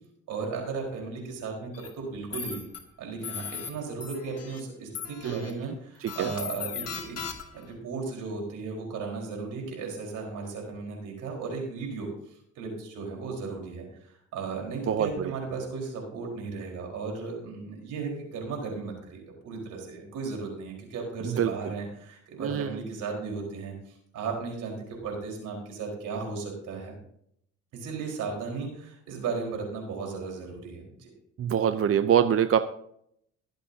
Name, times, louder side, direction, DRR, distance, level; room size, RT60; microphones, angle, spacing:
voice 1, 0.3-2.6 3.0-7.2 7.5-12.1 12.5-26.9 27.7-31.1, right 4 dB, 85° right, 0 dB, 4.6 m, -35 dB
sound 1, 1.7-1.9 2.3-2.8 3.2-3.7 4.0-4.6 4.9-5.5 6.1-7.6, left 7 dB, 55° left, 2.2 m, -37 dB
voice 2, 5.2-5.7 6.0-6.3 14.9-15.3 21.2-21.5 22.4-22.8 31.4-32.6, right 9 dB, 50° right, 10 dB, 0.7 m, -25 dB
23.5 x 8.2 x 2.8 m, 0.70 s
cardioid pair, 90°, 30 cm